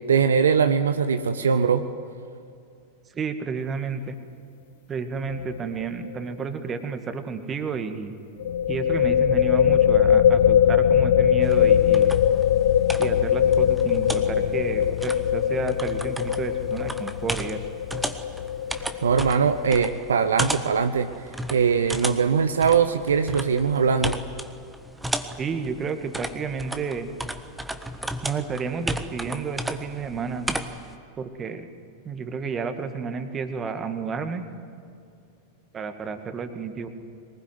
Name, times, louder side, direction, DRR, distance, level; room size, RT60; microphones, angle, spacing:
voice 1, 0.0-1.8 19.0-21.1 21.5-24.2, right 6 dB, 70° right, 9 dB, 0.9 m, -21 dB
voice 2, 3.1-4.1 4.9-8.2 8.7-12.1 13.0-17.6 25.4-27.1 28.2-30.5 31.2-31.7 32.0-34.4 35.7-36.9, right 5 dB, 25° right, 8 dB, 2.0 m, -31 dB
sound 1, 5.3-5.6 5.8-5.9 8.4-19.8, left 9 dB, 60° left, 0.5 m, -21 dB
sound 2, 11.4-30.9, right 1 dB, 5° right, 1.3 m, -34 dB
23.0 x 20.5 x 9.5 m, 2.5 s
figure-of-eight pair, 90°, 0 cm